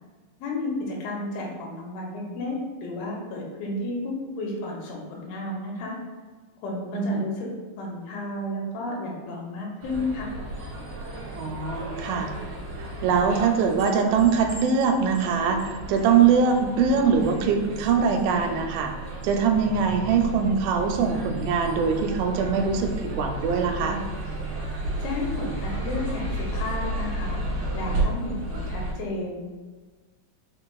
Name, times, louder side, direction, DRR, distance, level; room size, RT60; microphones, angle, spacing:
voice 1, 0.4-6.0 6.6-7.5 7.8-10.3 25.0-27.4 27.7-29.4, left 2 dB, 85° left, -2 dB, 2.4 m, -32 dB
voice 2, 6.9-7.2 11.4-12.3 12.8-18.9 19.2-24.0, right 6 dB, 90° right, 4 dB, 2.3 m, -22 dB
sound 1, 9.8-28.9, right 1 dB, 50° right, 1.9 m, -33 dB
5.1 x 4.0 x 2.3 m, 1.4 s
omnidirectional pair, 4.1 m